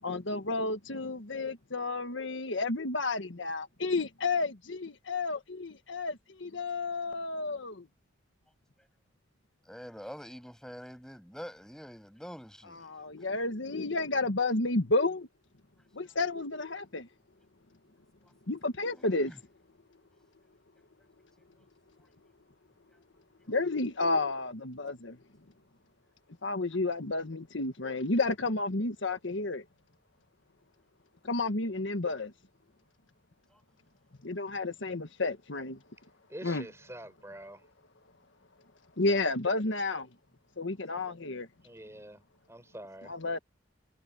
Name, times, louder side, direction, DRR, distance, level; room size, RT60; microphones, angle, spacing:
voice 1, 0.0-7.9 12.8-15.3 15.9-17.1 18.5-19.3 23.5-25.2 26.4-29.6 31.2-32.3 34.2-35.8 36.4-36.7 39.0-40.1 40.6-41.5 43.0-43.4, left 3 dB, 80° left, 1.5 m, -31 dB
voice 2, 9.6-12.9 19.0-19.4 33.5-33.6, equal, 5° left, 6.7 m, -46 dB
voice 3, 36.3-37.6 41.6-42.2 42.5-43.1, right 1 dB, 15° right, 5.4 m, -46 dB
head